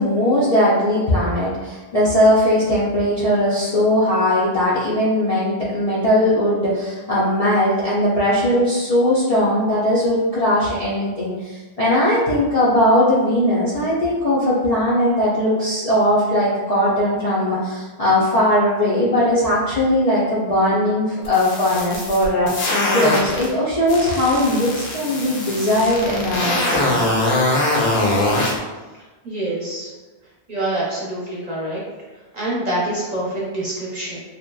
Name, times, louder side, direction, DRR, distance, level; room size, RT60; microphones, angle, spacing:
voice 1, 0.0-27.1, left 1 dB, 50° left, -9 dB, 0.4 m, -19 dB
sound 1, 21.2-23.5 23.9-28.5, left 2 dB, 70° left, 0.8 m, -22 dB
voice 2, 29.2-29.9 30.5-31.8 32.3-34.2, right 1 dB, 45° right, -7 dB, 0.7 m, -26 dB
2.7 x 2.1 x 2.2 m, 1.2 s
omnidirectional pair, 1.1 m